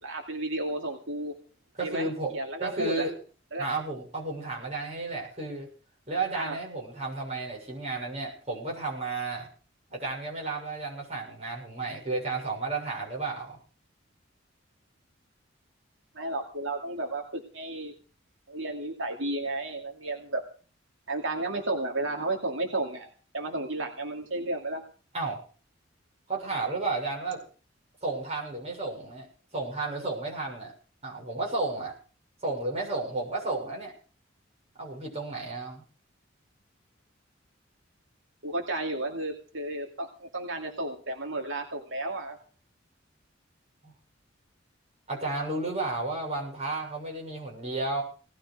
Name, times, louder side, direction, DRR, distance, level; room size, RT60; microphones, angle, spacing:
voice 1, 0.0-1.3 1.8-2.1 2.3-3.1 3.5-3.7 6.3-6.6 16.1-17.9 18.5-20.4 21.1-24.8 38.4-42.4, right 2 dB, 80° right, 2 dB, 2.5 m, -33 dB
voice 2, 1.8-2.3 2.6-3.1 3.6-5.7 6.1-9.5 9.9-13.6 25.1-25.4 26.3-27.4 28.0-29.3 29.5-30.7 31.0-32.0 32.4-33.9 34.8-35.8 43.8-43.9 45.1-48.0, right 3 dB, 35° right, -2 dB, 7.1 m, -32 dB
19.0 x 12.5 x 5.0 m, 0.40 s
head